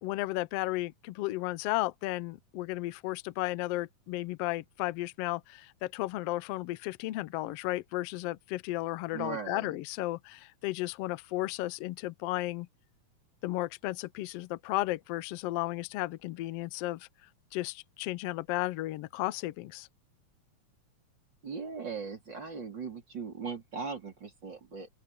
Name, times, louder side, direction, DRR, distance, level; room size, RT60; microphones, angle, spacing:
voice 1, 0.0-12.7 13.4-17.1 17.5-19.9, left 17 dB, 85° left, 1.4 m, -34 dB
voice 2, 9.1-9.8 21.4-24.9, right 5 dB, 35° right, 4.6 m, -39 dB
open air
omnidirectional pair, 3.6 m